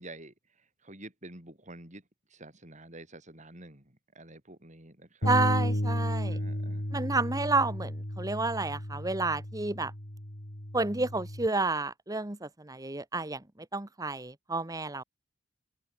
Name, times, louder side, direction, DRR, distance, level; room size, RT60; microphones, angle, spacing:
voice 1, 0.0-2.0 2.3-5.3 6.1-6.9, right 2 dB, 40° right, 8.0 m, -49 dB
Bass guitar, 5.2-11.5, equal, 55° left, 4.5 m, -33 dB
voice 2, 5.2-6.4 6.9-9.9 10.7-15.0, right 3 dB, 20° right, 1.3 m, -30 dB
open air
head